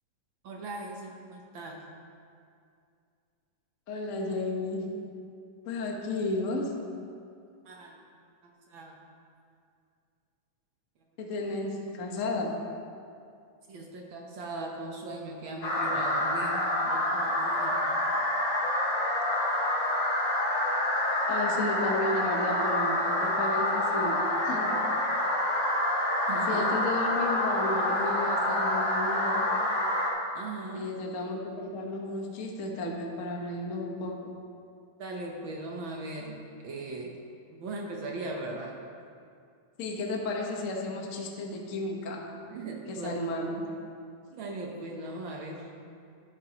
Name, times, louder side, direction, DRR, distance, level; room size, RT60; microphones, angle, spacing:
voice 1, 0.4-1.8 7.6-8.0 8.4-9.0 13.7-18.0 26.3-26.7 30.3-30.9 35.0-37.1 37.5-38.8 42.5-43.1 44.3-45.7, right 2 dB, 70° right, 0 dB, 1.2 m, -39 dB
voice 2, 3.9-5.0 5.7-6.8 11.2-12.6 21.3-24.2 24.4-24.7 26.4-29.5 30.7-34.2 39.8-42.2 42.9-43.6, left 2 dB, 85° left, 0 dB, 0.7 m, -33 dB
sound 1, 15.6-30.1, left 1 dB, 60° left, 2.8 m, -27 dB
12.5 x 12.0 x 3.0 m, 2.4 s
omnidirectional pair, 3.5 m